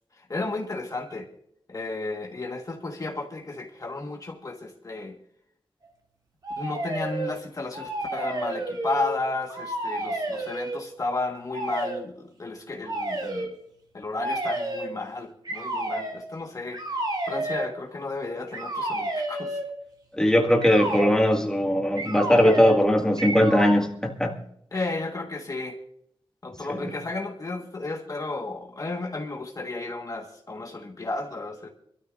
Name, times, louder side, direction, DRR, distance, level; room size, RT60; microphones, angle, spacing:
voice 1, 0.2-1.3 1.7-5.2 6.6-13.5 13.9-16.8 17.2-19.6 24.7-25.8 26.4-31.7, left 2 dB, 40° left, 2 dB, 1.5 m, -33 dB
sound 1, 6.4-7.3 7.7-9.2 9.5-10.8 11.5-12.0 12.8-13.5 14.2-14.9 15.5-16.2 16.7-17.7 18.5-19.7 20.6-21.1 22.0-22.8 23.2-23.8, right 1 dB, 45° right, 2.7 m, -31 dB
voice 2, 20.2-24.3 26.7-26.9, equal, 5° left, 0 dB, 1.9 m, -20 dB
26.0 x 13.0 x 2.5 m, 0.73 s
wide cardioid pair, 120°, 9 cm